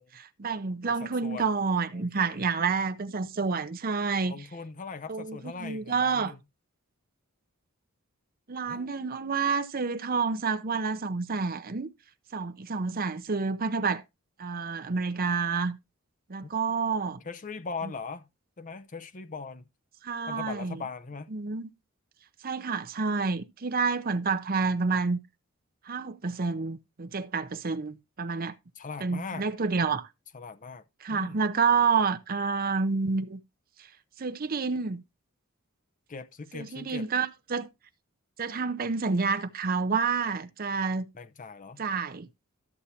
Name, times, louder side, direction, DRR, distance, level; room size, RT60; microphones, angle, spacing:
voice 1, 0.1-4.3 5.1-6.3 8.5-11.9 12.3-14.0 14.4-15.8 16.3-17.2 20.0-20.8 21.3-21.7 22.4-25.2 25.9-28.5 29.0-30.1 31.0-33.4 34.2-35.0 36.5-37.7 38.4-41.1 41.8-42.3, right 5 dB, 45° right, 0.7 m, -29 dB
voice 2, 0.9-1.5 1.9-2.5 4.3-6.4 8.7-8.9 17.2-18.3 18.6-19.7 20.3-21.3 28.8-29.5 30.3-30.8 31.1-31.4 36.1-37.1 41.1-41.8, left 4 dB, 40° left, 0.7 m, -40 dB
13.0 x 8.0 x 2.8 m
head